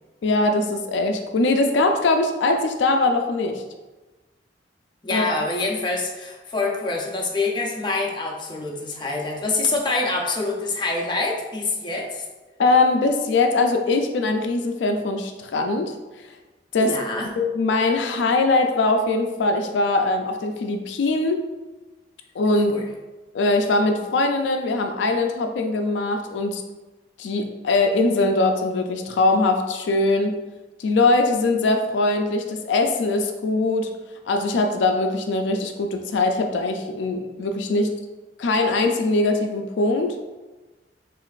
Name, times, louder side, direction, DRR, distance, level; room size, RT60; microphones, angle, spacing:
voice 1, 0.2-3.6 5.1-5.3 12.6-15.9 16.7-17.0 17.4-21.4 22.4-22.8 23.3-26.6 27.2-30.3 30.8-33.9 34.3-37.9 38.4-40.2, left 2 dB, 85° left, 5 dB, 0.4 m, -21 dB
voice 2, 5.0-12.2 16.8-17.3 22.7-22.8, left 3 dB, 25° left, 0 dB, 0.6 m, -26 dB
6.1 x 2.5 x 2.4 m, 1.2 s
head